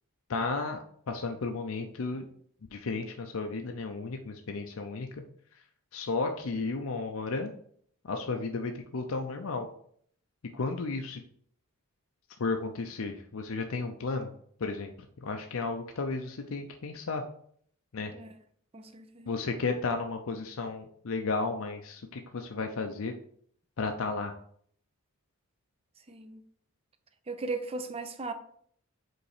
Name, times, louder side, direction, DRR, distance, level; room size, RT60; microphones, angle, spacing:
voice 1, 0.3-2.3 2.7-5.2 5.9-7.5 8.0-9.7 10.5-11.2 12.4-14.3 14.6-14.9 15.2-17.2 17.9-18.1 19.3-23.1 23.8-24.3, left 3 dB, 70° left, 0.6 m, -33 dB
voice 2, 18.7-19.3 26.1-26.4 27.3-28.3, right 3 dB, 25° right, 0.5 m, -37 dB
5.2 x 4.0 x 4.9 m
head